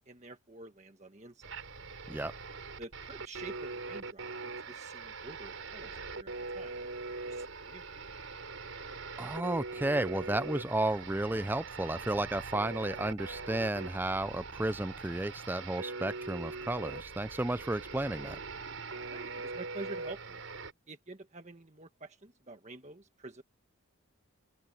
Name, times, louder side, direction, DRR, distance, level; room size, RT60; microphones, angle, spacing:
voice 1, 0.0-1.5 2.8-6.8 7.3-7.8 19.1-20.4 20.9-23.4, right 2 dB, 30° right, 1.4 m, -48 dB
sound 1, 1.4-20.7, right 3 dB, 70° right, 4.6 m, -42 dB
voice 2, 9.2-18.4, right 1 dB, 10° right, 0.4 m, -33 dB
open air
head